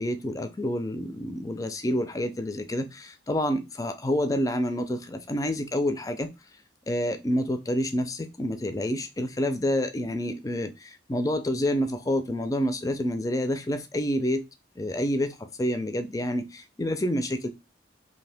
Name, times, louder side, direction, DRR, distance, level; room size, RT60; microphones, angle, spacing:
voice 1, 0.0-6.3 6.9-14.5 14.8-17.5, equal, 20° left, 0.4 m, -28 dB
2.7 x 2.7 x 3.3 m
head